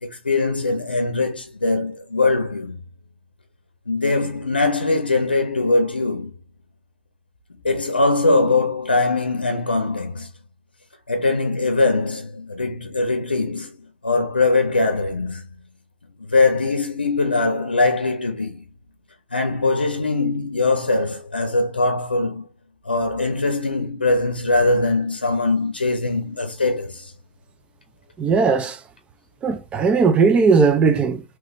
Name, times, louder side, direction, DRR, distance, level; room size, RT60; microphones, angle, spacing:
voice 1, 0.0-2.7 3.9-6.3 7.6-10.3 11.1-13.7 14.0-15.4 16.3-18.6 19.3-22.5 22.8-27.1, left 3 dB, 85° left, 0.7 m, -21 dB
voice 2, 28.2-28.8 29.4-31.2, right 5 dB, 20° right, 0.7 m, -17 dB
3.8 x 3.1 x 3.0 m
figure-of-eight pair, 100°, 5 cm